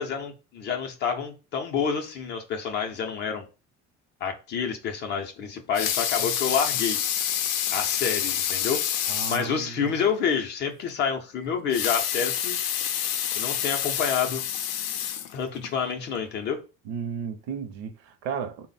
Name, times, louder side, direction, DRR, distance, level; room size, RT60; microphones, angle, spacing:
voice 1, 0.0-3.4 4.2-7.0 7.7-8.8 9.3-12.6 13.3-14.4 15.3-16.6, left 6 dB, 35° left, 0.5 m, -28 dB
Water tap faucet / Sink (filling or washing) / Liquid, 5.5-9.5 10.0-10.1 10.4-10.5 11.6-15.7 16.3-16.4, left 10 dB, 85° left, 0.6 m, -28 dB
voice 2, 9.1-9.9 16.8-18.7, right 7 dB, 60° right, 0.6 m, -34 dB
3.9 x 2.1 x 3.9 m
cardioid pair, 180°, 30 cm